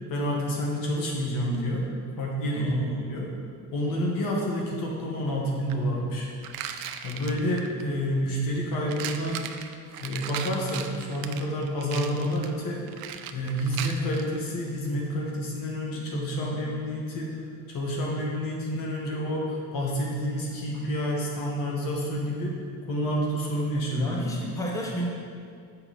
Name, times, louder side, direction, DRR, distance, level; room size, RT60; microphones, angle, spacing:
voice 1, 0.1-1.9 2.2-2.8 3.1-3.3 3.7-6.3 7.0-9.4 10.0-12.9 13.3-17.4 17.7-22.5 22.9-24.1, equal, 65° left, -2 dB, 1.7 m, -29 dB
voice 2, 2.5-3.1 24.0-25.1, right 1 dB, 10° left, -2 dB, 0.8 m, -30 dB
sound 1, 5.7-5.8 6.4-7.9 8.7-14.4, right 9 dB, 75° right, 0.5 m, -37 dB
7.1 x 5.6 x 4.2 m, 2.2 s
cardioid pair, 120°, 36 cm